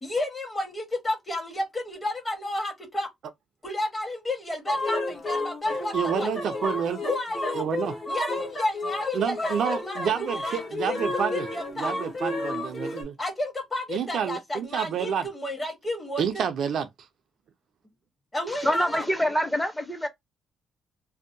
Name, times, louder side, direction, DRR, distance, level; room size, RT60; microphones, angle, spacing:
voice 1, 0.0-3.1 3.6-6.3 7.0-7.7 8.1-11.9 13.2-16.5 18.3-19.0, left 1 dB, 20° left, 1.1 m, -32 dB
sound 1, 4.7-13.0, left 2 dB, 40° left, 1.0 m, -31 dB
voice 2, 5.9-7.0 7.5-7.9 9.1-11.5 11.8-13.1 13.9-15.3 16.2-16.9, right 7 dB, 70° right, 0.4 m, -28 dB
voice 3, 18.5-20.1, equal, 5° left, 0.6 m, -26 dB
2.6 x 2.1 x 2.5 m
cardioid pair, 90°, 0 cm